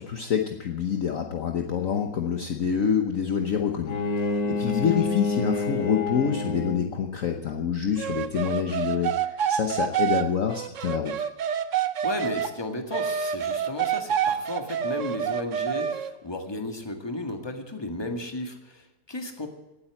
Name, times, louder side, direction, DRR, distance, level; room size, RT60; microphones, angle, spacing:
voice 1, 0.0-11.2, left 7 dB, 55° left, 4 dB, 1.2 m, -27 dB
Bowed string instrument, 3.8-7.1, left 3 dB, 80° left, 1.9 m, -28 dB
voice 2, 4.3-5.1 11.7-19.5, left 2 dB, 15° left, 5 dB, 1.8 m, -34 dB
sound 1, 8.0-12.5 12.9-16.1, right 9 dB, 55° right, 1.0 m, -27 dB
18.0 x 8.6 x 8.3 m, 1.0 s
omnidirectional pair, 1.9 m